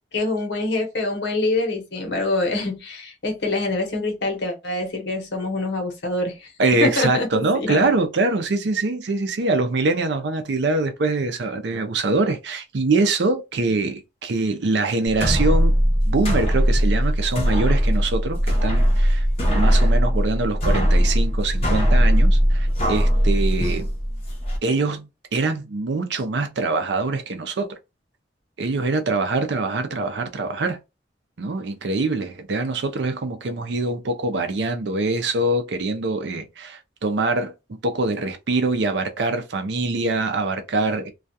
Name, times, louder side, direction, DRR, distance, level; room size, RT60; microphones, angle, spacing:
voice 1, 0.1-6.5 6.8-7.8, left 2 dB, 75° left, 0.9 m, -25 dB
voice 2, 6.6-15.7 16.1-23.9 24.6-27.8 28.6-30.8 31.4-41.1, right 3 dB, 75° right, 0.5 m, -24 dB
sound 1, 15.1-24.6, equal, 35° left, 0.8 m, -19 dB
2.3 x 2.2 x 2.6 m
head